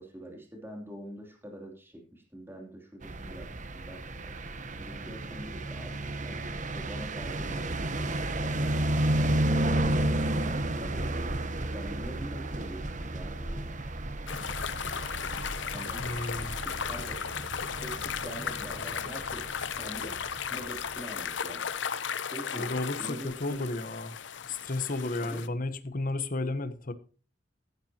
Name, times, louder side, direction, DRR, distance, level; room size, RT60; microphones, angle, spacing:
voice 1, 0.0-4.3 4.8-5.9 6.2-6.4 6.7-11.3 11.7-13.8 15.7-16.2 16.5-17.2 17.6-19.5 19.8-20.2 20.5-21.6 22.2-23.7 25.2-25.4, right 1 dB, 15° right, 3.1 m, -45 dB
sound 1, 3.0-21.0, right 1 dB, 45° right, 1.1 m, -32 dB
sound 2, 14.3-25.5, left 7 dB, 75° left, 0.8 m, -36 dB
voice 2, 16.0-16.5 22.5-24.2 24.5-26.9, left 2 dB, 50° left, 1.1 m, -33 dB
15.0 x 12.0 x 2.9 m
head